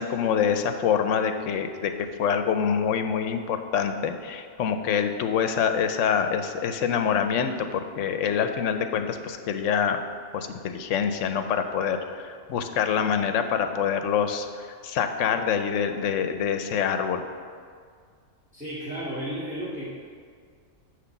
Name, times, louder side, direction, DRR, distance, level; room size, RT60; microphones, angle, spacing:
voice 1, 0.0-1.9 2.2-10.0 10.3-17.2, left 7 dB, 80° left, 7 dB, 0.9 m, -26 dB
voice 2, 18.5-19.9, equal, 5° right, -12 dB, 1.8 m, -33 dB
9.7 x 3.3 x 6.9 m, 2.1 s
omnidirectional pair, 1.3 m